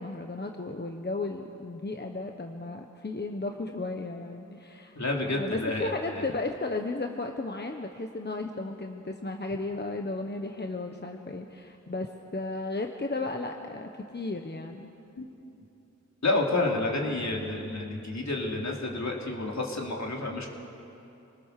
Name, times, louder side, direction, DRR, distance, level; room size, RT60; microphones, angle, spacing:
voice 1, 0.0-14.9, left 2 dB, 35° left, 4 dB, 1.2 m, -34 dB
voice 2, 4.9-6.2 15.2-15.3 16.2-20.5, left 2 dB, 65° left, -1 dB, 3.2 m, -29 dB
27.0 x 20.0 x 6.8 m, 2.9 s
wide cardioid pair, 60°, 31 cm